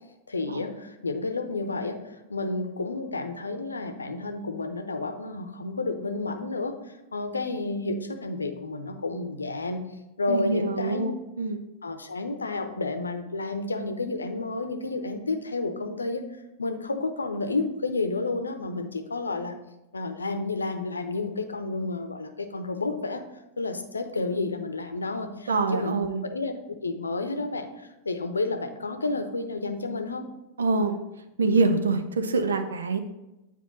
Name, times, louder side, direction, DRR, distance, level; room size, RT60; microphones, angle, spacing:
voice 1, 0.3-2.0 2.3-6.7 7.1-9.8 10.2-11.1 11.8-16.2 16.6-19.5 19.9-23.2 23.6-30.2, left 3 dB, 75° left, 7 dB, 0.7 m, -31 dB
voice 2, 10.3-11.6 25.5-26.2 30.6-31.0 31.4-33.0, right 3 dB, 70° right, 8 dB, 0.7 m, -25 dB
9.3 x 4.5 x 4.0 m, 0.98 s
figure-of-eight pair, 90°, 0 cm